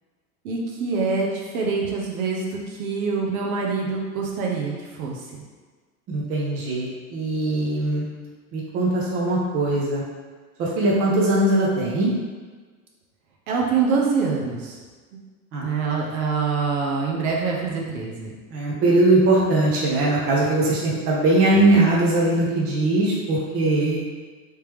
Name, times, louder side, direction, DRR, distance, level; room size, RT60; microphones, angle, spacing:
voice 1, 0.4-5.2 13.5-14.8 15.6-18.3, right 4 dB, 65° right, -2 dB, 0.9 m, -25 dB
voice 2, 6.1-8.0 8.5-10.0 10.6-12.1 15.5-15.7 18.5-24.0, right 2 dB, 30° right, -4 dB, 0.8 m, -20 dB
3.3 x 2.9 x 3.4 m, 1.4 s
supercardioid pair, 140°, 45 cm